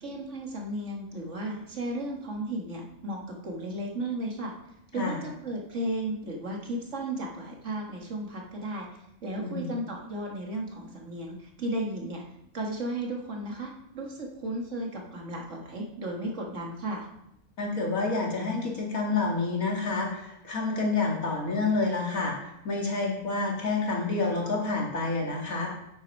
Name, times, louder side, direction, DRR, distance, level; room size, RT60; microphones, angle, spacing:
voice 1, 0.0-4.5 4.9-8.9 9.2-12.2 12.5-17.1, right 1 dB, 60° right, 0 dB, 2.1 m, -34 dB
voice 2, 9.4-9.7 17.6-22.3 22.6-25.7, left 3 dB, 85° left, -1 dB, 2.8 m, -28 dB
8.2 x 8.0 x 5.4 m, 0.81 s
omnidirectional pair, 1.4 m